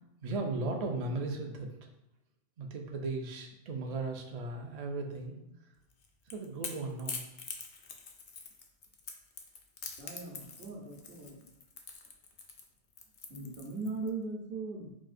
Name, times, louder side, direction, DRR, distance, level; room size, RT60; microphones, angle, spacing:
voice 1, 0.2-1.7 2.6-5.4 6.3-7.2, right 3 dB, 50° right, 1 dB, 0.5 m, -36 dB
Crackle / Crack, 5.9-14.1, left 5 dB, 60° left, 0.6 m, -44 dB
voice 2, 10.0-11.3 13.3-14.9, right 3 dB, 65° right, -1 dB, 1.1 m, -39 dB
4.9 x 2.7 x 2.5 m, 0.90 s
omnidirectional pair, 1.1 m